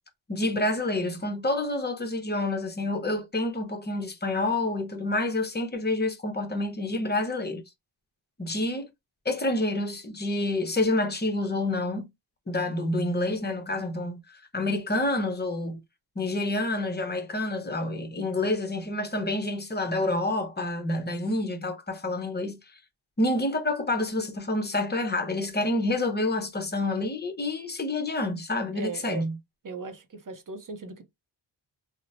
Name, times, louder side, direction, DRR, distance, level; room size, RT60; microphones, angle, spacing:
voice 1, 0.3-7.6 8.4-8.9 9.2-12.1 12.5-15.8 16.2-22.6 23.2-29.4, left 2 dB, 20° left, 0.7 m, -28 dB
voice 2, 28.7-29.3 29.6-31.0, right 4 dB, 40° right, 0.6 m, -38 dB
2.8 x 2.1 x 2.5 m
cardioid pair, 65°, 50 cm